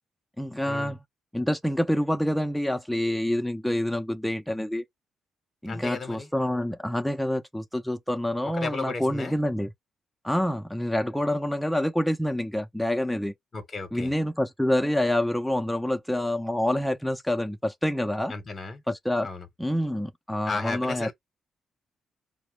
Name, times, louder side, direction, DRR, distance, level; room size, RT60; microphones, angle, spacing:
voice 1, 0.4-1.0 1.3-4.8 5.6-9.7 10.2-13.3 13.9-18.3 18.9-19.3 19.6-21.1, left 1 dB, ahead, 0.5 m, -27 dB
voice 2, 5.7-6.3 8.4-9.4 13.5-14.1 18.3-18.8 19.2-19.5 20.4-21.1, left 3 dB, 35° left, 0.8 m, -34 dB
4.2 x 2.0 x 3.1 m
cardioid pair, 75°, 0 cm